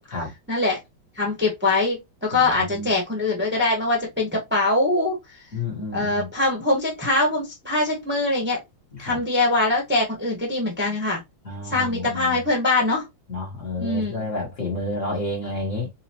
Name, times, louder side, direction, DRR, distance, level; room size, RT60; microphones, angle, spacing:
voice 1, 0.5-0.8 1.1-5.2 5.9-8.6 9.0-11.2 11.6-13.1 13.8-14.3, left 2 dB, 5° right, 1.0 m, -23 dB
voice 2, 2.3-2.9 5.5-6.3 8.9-9.2 11.4-12.4 13.3-15.9, left 2 dB, 40° left, 1.6 m, -30 dB
4.0 x 2.6 x 2.8 m
omnidirectional pair, 2.1 m